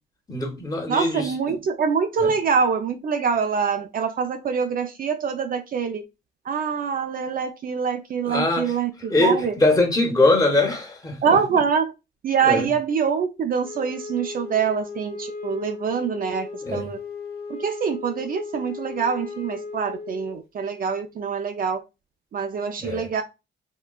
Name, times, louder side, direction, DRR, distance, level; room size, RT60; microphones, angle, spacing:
voice 1, 0.3-1.6 2.2-2.3 8.2-8.8 9.1-11.4 12.4-12.7 16.6-16.9 22.8-23.1, left 2 dB, 20° left, 1.0 m, -22 dB
voice 2, 0.9-6.0 6.5-9.5 11.2-11.9 12.2-17.0 17.5-21.8 22.3-23.2, right 6 dB, 45° right, 0.4 m, -25 dB
Wind instrument woodwind instrument, 13.6-20.4, left 4 dB, 50° left, 0.7 m, -36 dB
3.6 x 2.3 x 2.3 m
cardioid pair, 90°, 20 cm